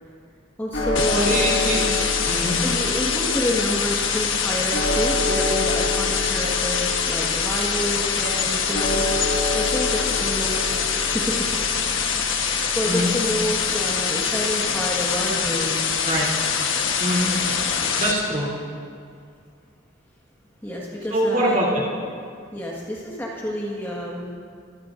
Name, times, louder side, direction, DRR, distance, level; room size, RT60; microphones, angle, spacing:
voice 1, 0.6-1.5 2.6-11.3 11.9-15.9 20.6-22.0 22.5-24.3, equal, 10° left, -3 dB, 1.6 m, -29 dB
sound 1, 0.7-15.0, left 2 dB, 55° left, 2.0 m, -29 dB
sound 2, 1.0-18.1, left 6 dB, 90° left, 1.3 m, -24 dB
voice 2, 1.2-2.5 12.8-13.1 16.0-16.3 17.0-17.3 18.0-18.5 21.1-21.8, right 1 dB, 40° right, -4 dB, 3.0 m, -24 dB
23.5 x 16.0 x 2.6 m, 2.2 s
head